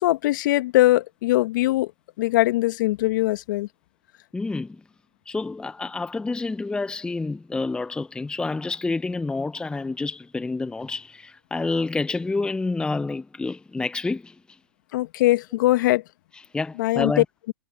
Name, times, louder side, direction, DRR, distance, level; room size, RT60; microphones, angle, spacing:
voice 1, 0.0-1.9 2.2-3.7 14.9-16.0 16.8-17.1, left 17 dB, 55° left, 1.8 m, -21 dB
voice 2, 4.3-4.8 5.3-14.3 16.5-17.2, left 3 dB, 5° left, 0.8 m, -28 dB
hypercardioid pair, 115°, 12 cm